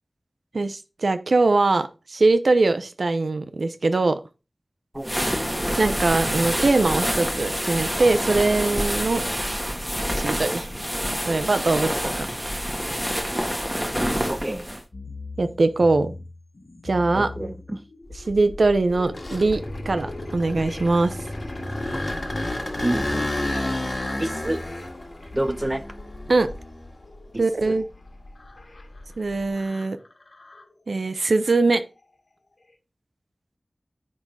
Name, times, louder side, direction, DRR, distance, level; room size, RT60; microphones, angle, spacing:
voice 1, 0.5-4.2 5.8-9.2 10.2-10.7 11.3-11.9 12.2-12.3 15.4-16.1 16.8-17.3 18.3-21.2 26.3-26.5 27.4-27.8 29.2-30.0 30.9-31.8, right 3 dB, 85° right, 0.8 m, -21 dB
sound 1, 5.0-14.8, equal, 5° right, 1.7 m, -27 dB
voice 2, 14.2-14.7 17.1-17.8 22.8-23.4 24.2-24.6 25.3-25.9 27.3-27.8, right 1 dB, 25° right, 0.8 m, -28 dB
sound 2, 14.9-30.8 31.5-32.1 32.6-32.7, left 3 dB, 75° left, 1.7 m, -44 dB
sound 3, 18.1-27.1 27.6-29.4, left 1 dB, 40° left, 1.7 m, -31 dB
9.6 x 3.9 x 4.8 m
wide cardioid pair, 60°, 0 cm